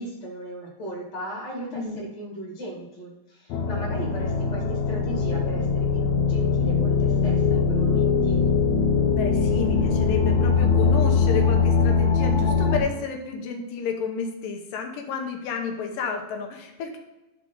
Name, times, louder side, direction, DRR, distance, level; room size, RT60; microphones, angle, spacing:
voice 1, 0.0-8.4, right 1 dB, 35° left, -3 dB, 2.4 m, -37 dB
voice 2, 1.7-2.0 9.1-17.0, left 5 dB, 90° left, 3 dB, 2.8 m, -31 dB
sound 1, 3.5-12.8, left 5 dB, 70° left, 2.1 m, -21 dB
12.0 x 4.8 x 3.9 m, 1.1 s
omnidirectional pair, 3.8 m